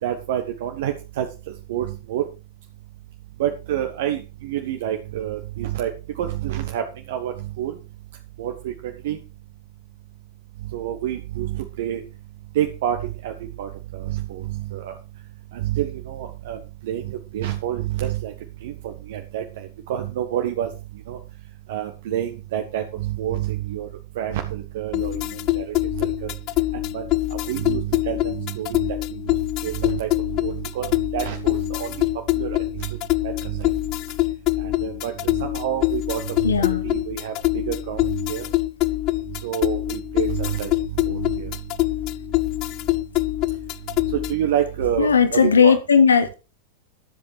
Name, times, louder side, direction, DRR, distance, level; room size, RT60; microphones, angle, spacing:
voice 1, 0.0-1.3 1.7-2.2 3.4-5.9 6.2-7.8 8.4-9.2 10.7-12.0 12.5-13.0 13.2-13.3 13.6-14.9 15.5-16.6 16.8-18.3 18.6-20.7 21.1-21.2 21.7-23.9 24.1-25.7 26.2-26.3 26.9-27.0 27.5-29.3 29.6-30.1 30.4-30.9 31.1-31.9 32.3-32.9 33.2-33.7 34.6-38.4 39.4-40.7 41.1-41.5 44.1-45.7, right 11 dB, 55° right, 4 dB, 1.4 m, -28 dB
sound 1, 24.9-44.5, left 18 dB, 40° left, 0.6 m, -24 dB
voice 2, 36.4-36.8 45.0-46.3, left 6 dB, 70° left, 10 dB, 1.6 m, -17 dB
13.5 x 7.9 x 4.7 m, 0.31 s
figure-of-eight pair, 90°, 0 cm